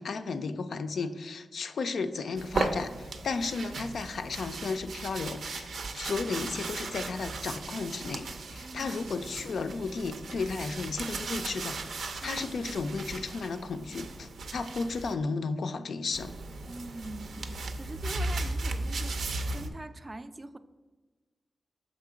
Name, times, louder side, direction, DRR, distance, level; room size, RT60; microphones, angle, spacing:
voice 1, 0.0-16.3, left 4 dB, 80° left, 9 dB, 0.4 m, -34 dB
sound 1, 2.4-15.1 16.1-19.7, right 3 dB, 85° right, 0.5 m, -36 dB
voice 2, 8.6-9.0 12.2-12.7 16.7-19.2 19.5-20.6, right 2 dB, 30° right, 11 dB, 0.3 m, -43 dB
6.3 x 3.7 x 4.9 m, 1.3 s
wide cardioid pair, 95°, 0 cm